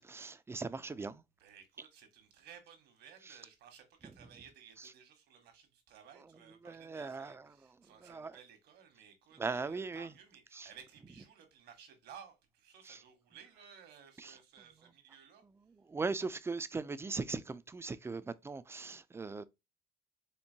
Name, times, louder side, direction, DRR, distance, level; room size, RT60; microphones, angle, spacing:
voice 1, 0.0-1.2 6.6-7.4 8.0-8.3 9.4-10.1 10.5-10.7 12.9-13.0 14.2-14.3 15.9-19.4, right 4 dB, 15° right, 0.3 m, -39 dB
voice 2, 1.4-15.4, right 8 dB, 80° right, 1.3 m, -57 dB
4.4 x 2.9 x 2.7 m
cardioid pair, 110°, 17 cm